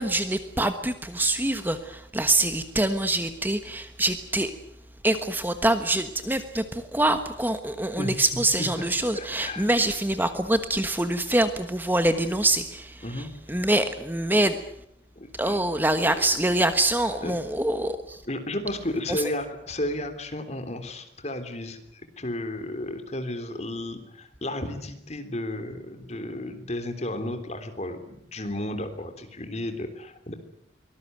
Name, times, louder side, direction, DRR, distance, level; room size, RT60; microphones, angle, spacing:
voice 1, 0.0-4.5 5.0-14.6 15.4-18.2 19.1-19.2, right 1 dB, 10° right, 9 dB, 1.2 m, -25 dB
voice 2, 9.1-9.7 13.0-13.3 15.1-15.6 16.0-16.2 17.2-17.3 18.3-30.3, left 1 dB, 35° left, 8 dB, 3.5 m, -33 dB
24.0 x 20.0 x 9.4 m, 0.76 s
head